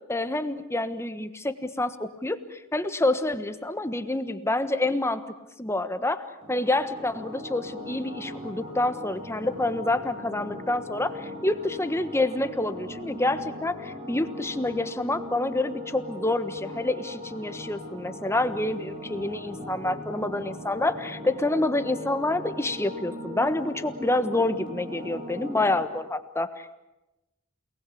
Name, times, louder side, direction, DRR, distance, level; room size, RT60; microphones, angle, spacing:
voice 1, 0.1-5.2 5.6-26.7, left 2 dB, 15° left, 10 dB, 1.3 m, -28 dB
sound 1, 6.4-25.8, left 1 dB, 25° right, 4.3 m, -39 dB
29.0 x 19.5 x 8.6 m, 0.98 s
head